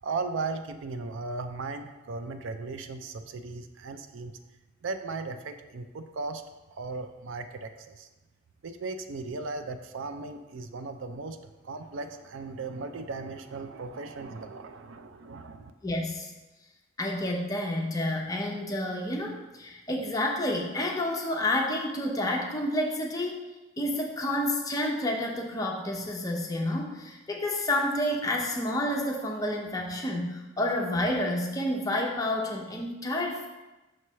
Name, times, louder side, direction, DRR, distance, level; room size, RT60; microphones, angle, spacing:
voice 1, 0.0-4.4 4.8-6.4 6.7-8.1 8.6-11.4 11.6-15.7, right 3 dB, 65° right, 9 dB, 0.4 m, -37 dB
voice 2, 15.8-16.3 17.0-23.4 23.8-33.5, left 1 dB, 15° left, 0 dB, 0.6 m, -29 dB
6.2 x 3.1 x 5.4 m, 1.1 s
head